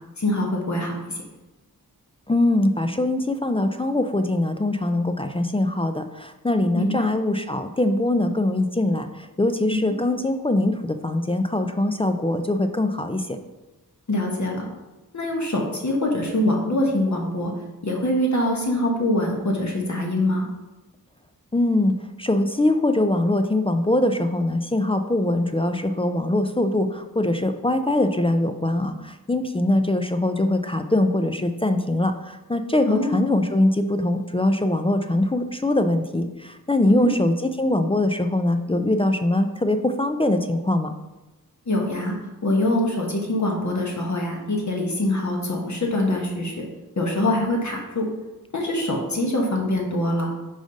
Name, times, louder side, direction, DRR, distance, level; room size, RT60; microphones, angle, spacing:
voice 1, 0.2-1.0 6.7-6.9 14.1-14.6 15.1-17.5 17.8-20.5 32.9-33.2 36.9-37.1 41.7-42.1 42.4-46.5 47.0-48.1 48.5-50.3, left 1 dB, 50° left, 0 dB, 1.2 m, -24 dB
voice 2, 2.3-13.4 21.5-40.9, left 1 dB, 15° left, 7 dB, 0.4 m, -22 dB
5.0 x 3.9 x 5.1 m, 1.1 s
cardioid pair, 60°, 37 cm